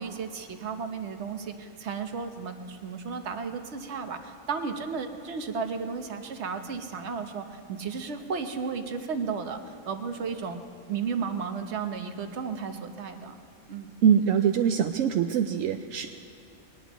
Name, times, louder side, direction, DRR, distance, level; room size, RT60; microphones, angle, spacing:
voice 1, 0.0-10.6 10.9-13.3 13.7-13.9, right 5 dB, 60° right, 6 dB, 1.2 m, -34 dB
voice 2, 14.0-16.1, right 8 dB, 80° right, 7 dB, 0.9 m, -23 dB
22.0 x 19.0 x 3.1 m, 2.6 s
omnidirectional pair, 1.3 m